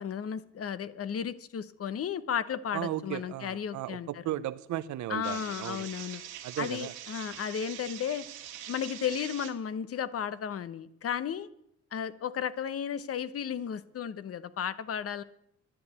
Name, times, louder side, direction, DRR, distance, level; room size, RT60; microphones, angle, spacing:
voice 1, 0.0-4.1 5.1-6.2 6.6-8.2 8.7-11.5 11.9-15.2, left 8 dB, 50° left, 15 dB, 0.9 m, -34 dB
voice 2, 2.7-5.9 6.4-6.9, right 13 dB, 70° right, 13 dB, 0.7 m, -35 dB
sound 1, 5.2-9.5, right 11 dB, 90° right, 2.1 m, -44 dB
11.0 x 11.0 x 8.2 m, 0.76 s
cardioid pair, 90°, 30 cm